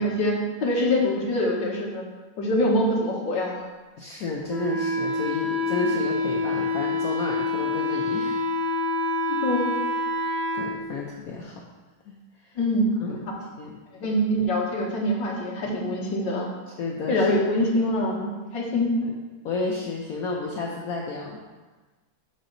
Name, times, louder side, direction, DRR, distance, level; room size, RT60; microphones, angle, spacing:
voice 1, 0.0-2.0 2.4-3.6 9.3-9.8 12.6-13.4 13.9-16.5 17.1-19.0, left 1 dB, 60° left, -4 dB, 2.0 m, -24 dB
voice 2, 4.0-8.4 10.5-11.6 12.1-12.2 12.4-12.6 13.0-13.2 13.6-13.8 16.8-17.3 19.0-19.1 19.4-21.4, left 3 dB, 80° left, -1 dB, 0.8 m, -31 dB
Wind instrument woodwind instrument, 4.5-10.6, left 2 dB, 50° right, 2.5 m, -26 dB
6.7 x 6.5 x 3.9 m, 1.3 s
omnidirectional pair, 2.4 m